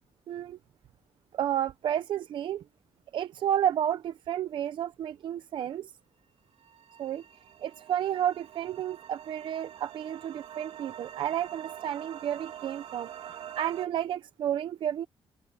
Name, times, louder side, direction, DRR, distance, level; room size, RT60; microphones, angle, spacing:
voice 1, 0.3-0.6 1.3-2.6 3.1-5.9 7.0-7.2 7.6-13.1 13.6-15.1, right 10 dB, 55° right, 0.7 m, -31 dB
sound 1, 6.6-13.9, right 10 dB, 75° right, 3.2 m, -45 dB
cardioid pair, 165°, 10 cm